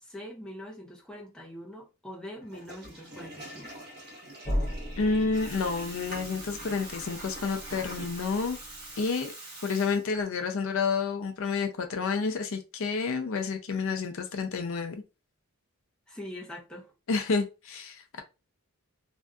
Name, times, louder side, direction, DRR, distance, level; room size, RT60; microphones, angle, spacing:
voice 1, 0.0-3.8 16.1-16.9, left 1 dB, 5° left, 0.6 m, -43 dB
Water tap faucet / Toilet flush, 2.4-10.4, right 1 dB, 45° right, 1.2 m, -44 dB
sound 1, 4.4-9.1, equal, 30° left, 0.8 m, -37 dB
voice 2, 5.0-8.6 9.0-9.3 9.6-15.0 17.1-18.2, left 4 dB, 60° left, 0.5 m, -29 dB
2.6 x 2.3 x 2.3 m
head